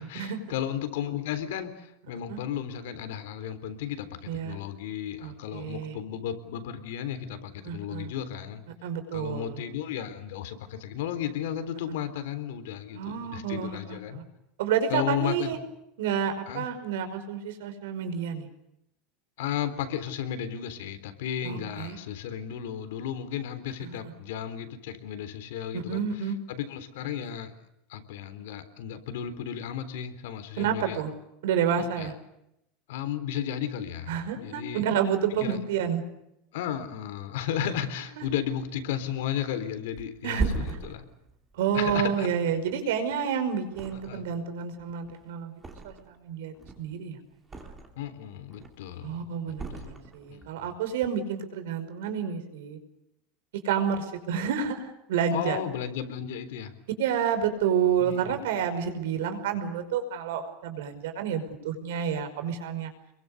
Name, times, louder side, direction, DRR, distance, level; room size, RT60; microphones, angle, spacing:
voice 1, 0.0-8.6 9.1-14.2 14.9-15.5 16.5-16.7 19.4-27.5 27.9-31.0 32.0-32.1 32.9-34.8 35.4-35.6 36.5-41.1 41.7-42.3 43.9-44.3 48.0-49.9 50.3-50.7 55.3-56.7 58.0-58.4, left 9 dB, 70° left, 10 dB, 3.7 m, -34 dB
voice 2, 4.3-4.6 5.2-6.0 7.6-8.1 8.8-9.6 12.9-14.2 14.6-15.6 16.0-18.5 21.4-22.0 23.8-24.0 25.7-26.4 30.6-31.1 31.4-32.1 34.1-36.0 38.2-38.3 40.2-40.9 41.5-47.2 49.0-52.8 53.6-55.6 57.0-62.9, right 8 dB, 80° right, 8 dB, 5.3 m, -29 dB
Thump thud, 40.0-43.2 43.7-44.5 44.7-46.2 46.5-48.1 48.4-49.0 49.5-50.5 50.9-51.1, right 3 dB, 10° right, 2.5 m, -37 dB
28.5 x 23.0 x 6.7 m, 0.83 s
supercardioid pair, 180°, 0 cm